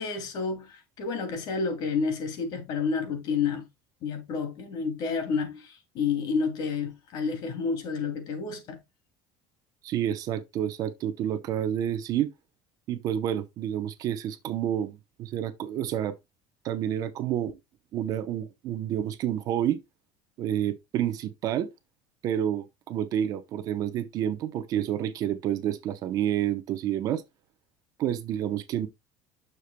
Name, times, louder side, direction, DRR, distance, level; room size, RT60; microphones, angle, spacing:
voice 1, 0.0-3.7 4.0-8.8, left 5 dB, 50° left, 2.5 m, -30 dB
voice 2, 9.8-12.3 12.9-16.2 16.6-17.6 17.9-19.8 20.4-21.7 22.2-27.2 28.0-28.9, right 10 dB, 45° right, 0.7 m, -29 dB
9.6 x 6.8 x 2.2 m
cardioid pair, 165°, 9 cm